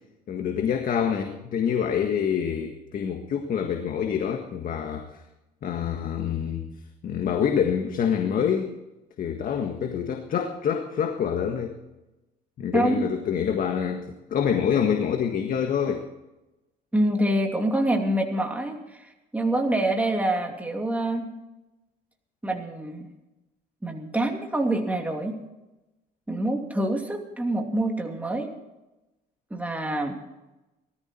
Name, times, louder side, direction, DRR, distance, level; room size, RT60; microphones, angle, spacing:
voice 1, 0.3-5.2 5.6-6.7 7.0-8.7 9.2-11.7 12.6-16.0, left 8 dB, 55° left, 4 dB, 1.7 m, -26 dB
voice 2, 12.7-13.1 16.9-19.1 19.3-21.3 22.4-23.1 23.8-25.4 26.3-28.5 29.5-30.2, right 1 dB, 10° right, 2 dB, 2.7 m, -26 dB
19.0 x 14.0 x 4.5 m, 1.0 s
cardioid pair, 110°, 17 cm